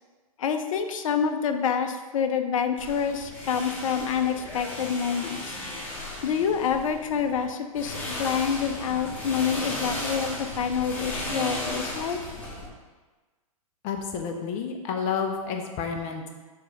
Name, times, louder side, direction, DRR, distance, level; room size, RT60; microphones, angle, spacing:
voice 1, 0.4-5.6 6.2-12.2, left 7 dB, 65° left, 7 dB, 0.7 m, -27 dB
sound 1, 2.8-7.5 7.7-12.7, left 1 dB, 10° left, 1.6 m, -35 dB
voice 2, 13.8-16.3, left 6 dB, 35° left, 3 dB, 0.9 m, -30 dB
6.9 x 3.3 x 5.3 m, 1.3 s
hypercardioid pair, 115°, 19 cm